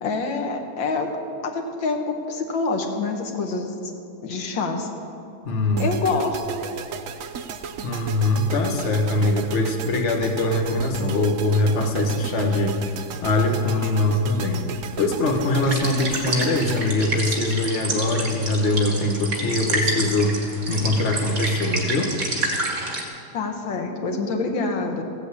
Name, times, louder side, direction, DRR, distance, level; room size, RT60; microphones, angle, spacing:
voice 1, 0.0-1.1 1.4-3.9 4.2-4.9 5.8-6.6 23.3-25.0, left 3 dB, 85° left, 4 dB, 1.9 m, -26 dB
voice 2, 5.4-5.9 7.8-12.7 13.2-14.6 15.0-20.3 20.7-22.1, left 2 dB, 40° left, 1 dB, 1.5 m, -22 dB
sound 1, 5.8-17.9, right 6 dB, 65° right, 0.8 m, -36 dB
sound 2, 15.6-23.0, right 2 dB, 45° right, 2.5 m, -28 dB
15.5 x 7.9 x 8.3 m, 2.6 s
omnidirectional pair, 2.1 m